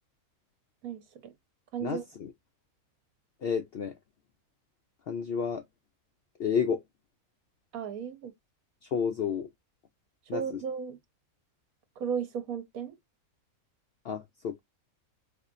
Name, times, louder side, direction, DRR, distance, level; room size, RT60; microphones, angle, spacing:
voice 1, 0.8-1.3 1.7-2.0 7.7-8.3 10.3-11.0 12.0-12.9, right 7 dB, 80° right, 1.3 m, -35 dB
voice 2, 1.8-2.3 3.4-3.9 5.1-5.6 6.4-6.8 8.9-9.5 10.3-10.4 14.0-14.6, left 6 dB, 70° left, 0.6 m, -30 dB
4.3 x 2.8 x 2.5 m
omnidirectional pair, 1.5 m